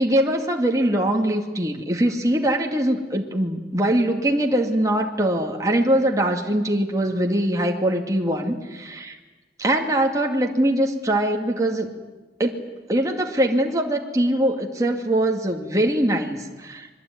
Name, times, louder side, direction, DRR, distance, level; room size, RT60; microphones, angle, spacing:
voice 1, 0.0-9.2 9.6-11.9 12.4-12.6 12.9-16.9, right 1 dB, 20° right, 1 dB, 2.3 m, -22 dB
26.0 x 22.5 x 9.5 m, 1.2 s
head